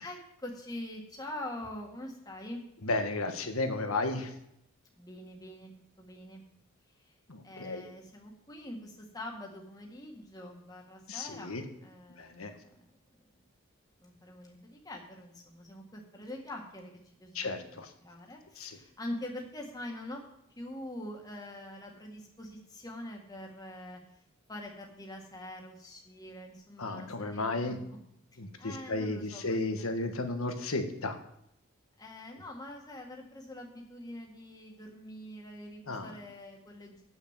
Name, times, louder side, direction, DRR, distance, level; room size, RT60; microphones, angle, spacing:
voice 1, 0.0-2.6 5.0-5.7 6.0-6.4 7.0-7.1 7.4-11.6 11.8-12.9 14.0-17.5 18.0-20.2 20.6-24.0 24.5-27.8 28.6-29.9 32.0-37.0, left 1 dB, 20° left, 0 dB, 1.7 m, -44 dB
voice 2, 2.8-4.3 7.3-7.9 11.1-11.6 12.1-12.5 17.3-17.9 18.6-18.8 26.8-27.8 28.4-31.2 35.9-36.2, left 2 dB, 90° left, 6 dB, 1.4 m, -33 dB
8.8 x 6.5 x 7.4 m, 0.76 s
head